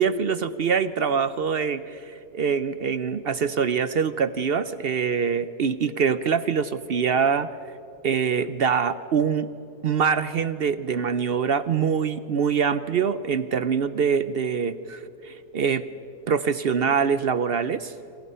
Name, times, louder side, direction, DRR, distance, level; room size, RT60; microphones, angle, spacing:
voice 1, 0.0-7.5 8.0-9.5 9.8-15.8 16.3-17.9, right 6 dB, 60° right, 14 dB, 0.6 m, -24 dB
27.0 x 26.5 x 5.6 m, 2.8 s
omnidirectional pair, 1.6 m